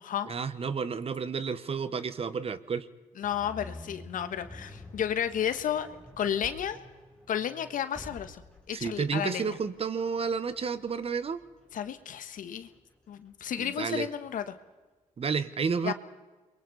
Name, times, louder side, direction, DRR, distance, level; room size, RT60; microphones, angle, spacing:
voice 1, 0.3-2.9 8.7-11.4 13.6-14.1 15.2-15.9, right 5 dB, 45° right, 14 dB, 1.4 m, -31 dB
voice 2, 3.2-5.9 6.2-6.8 7.3-8.4 8.7-9.6 11.7-12.7 13.1-14.5 15.8-15.9, left 9 dB, 70° left, 10 dB, 1.5 m, -32 dB
sound 1, 3.2-14.4, left 2 dB, 5° left, 4.6 m, -50 dB
28.5 x 22.5 x 4.2 m, 1.3 s
cardioid pair, 75°, 14 cm